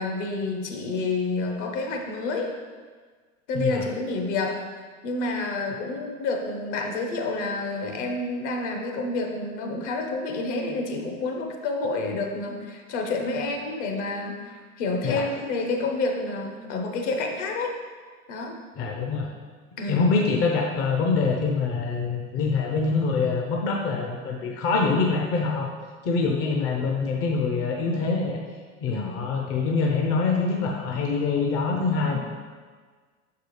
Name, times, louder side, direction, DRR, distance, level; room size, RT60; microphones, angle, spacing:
voice 1, 0.0-2.5 3.5-4.6 5.0-17.7 18.3-18.6 19.8-20.1 28.9-29.2 32.0-32.2, left 3 dB, 55° left, 3 dB, 1.0 m, -29 dB
voice 2, 3.5-3.8 15.0-15.2 18.7-19.3 19.9-25.7 26.0-28.4 28.8-32.2, left 4 dB, 35° left, 0 dB, 0.7 m, -25 dB
6.4 x 4.7 x 3.2 m, 1.5 s
figure-of-eight pair, 90°, 41 cm